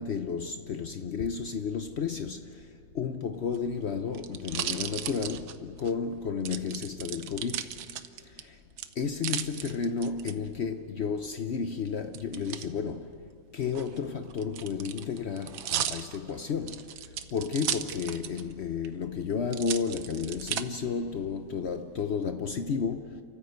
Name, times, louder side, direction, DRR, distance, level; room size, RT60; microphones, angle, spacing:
voice 1, 0.0-2.7 2.9-7.7 8.4-8.6 9.0-13.2 13.5-16.9 17.3-23.2, left 6 dB, 85° left, 0.5 m, -32 dB
sound 1, 3.4-5.9 6.5-8.4 8.8-10.3 12.1-12.7 13.6-18.5 18.8-18.9 19.5-20.6 21.3-21.8, right 11 dB, 80° right, 1.6 m, -35 dB
30.0 x 14.0 x 8.0 m
omnidirectional pair, 2.2 m